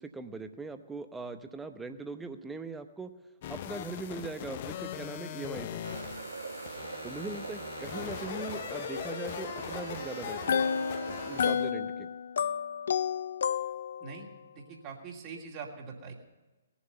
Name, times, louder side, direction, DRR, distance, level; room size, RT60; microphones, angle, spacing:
voice 1, 0.0-3.1 3.5-5.8 7.0-12.1, right 3 dB, 10° right, 8 dB, 0.9 m, -41 dB
sound 1, 3.4-11.7, left 10 dB, 40° left, 0.7 m, -40 dB
sound 2, 5.8-11.4, right 4 dB, 75° right, 1.3 m, -42 dB
sound 3, 10.3-14.2, left 7 dB, 60° left, 0.3 m, -31 dB
voice 2, 14.5-16.1, right 5 dB, 30° right, 0 dB, 2.6 m, -43 dB
19.5 x 7.2 x 6.7 m, 1.2 s
figure-of-eight pair, 125°, 0 cm